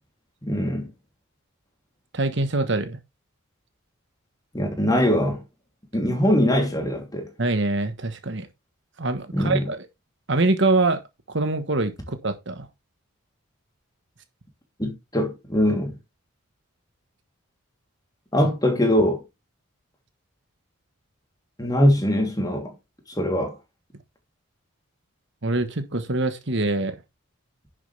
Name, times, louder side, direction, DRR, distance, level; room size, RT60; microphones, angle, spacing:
voice 1, 0.4-0.9 4.5-5.4 5.9-7.3 9.3-9.7 14.8-16.0 18.3-19.2 21.6-22.7 23.1-23.6, equal, 15° left, 3.0 m, -22 dB
voice 2, 2.1-3.0 7.4-8.5 9.0-9.9 10.3-11.0 11.3-12.7 25.4-27.0, right 2 dB, 55° right, 1.2 m, -24 dB
11.0 x 7.3 x 3.4 m
head